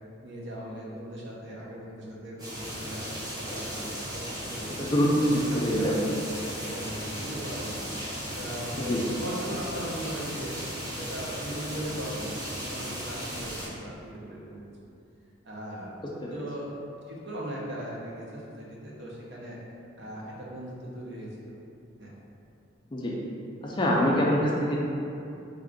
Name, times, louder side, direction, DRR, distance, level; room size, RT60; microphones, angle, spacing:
voice 1, 0.2-3.2 3.5-3.8 4.1-4.7 5.5-5.9 6.6-7.8 8.3-10.5 10.9-14.7 15.4-16.0 16.3-16.7 17.1-19.6 20.0-21.3 22.0-22.1, equal, 60° right, -5 dB, 0.7 m, -38 dB
Medium Rain Ambience edlarez vsnr, 2.4-13.7, equal, 20° right, 0.7 m, -36 dB
voice 2, 4.8-5.9 8.8-9.0 16.2-16.3 22.9-23.2 23.6-24.8, equal, 25° left, -3 dB, 0.4 m, -25 dB
3.6 x 2.4 x 3.6 m, 2.7 s
head